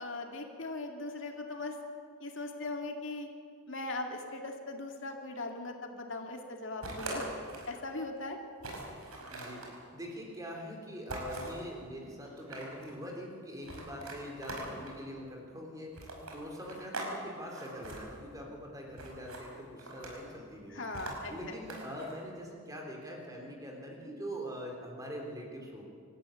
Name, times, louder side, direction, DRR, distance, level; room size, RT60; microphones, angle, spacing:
voice 1, 0.0-1.8 2.2-3.3 3.7-7.3 7.7-8.4 20.7-21.6, left 2 dB, 60° left, 3 dB, 2.2 m, -39 dB
sound 1, 6.8-7.8 8.2-8.3 8.6-9.7 11.1-11.6 12.2-12.9 13.6-15.0 15.9-17.1 17.4-18.0 19.0-19.4 19.8-20.3 20.9-22.1, right 2 dB, 85° right, 5.3 m, -42 dB
voice 2, 9.3-20.9 21.3-25.9, equal, 15° right, 0 dB, 3.5 m, -43 dB
26.5 x 13.5 x 8.9 m, 2.3 s
head